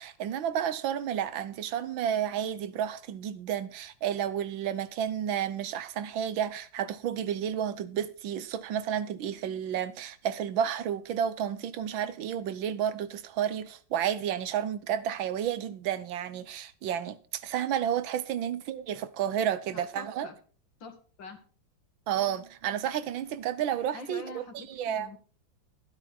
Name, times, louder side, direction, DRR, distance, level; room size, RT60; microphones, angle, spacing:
voice 1, 0.0-20.3 22.1-25.1, right 9 dB, 85° right, 1.7 m, -31 dB
voice 2, 19.7-20.3 20.8-21.4 23.9-25.2, left 3 dB, 70° left, 2.5 m, -44 dB
12.0 x 12.0 x 4.2 m
omnidirectional pair, 2.1 m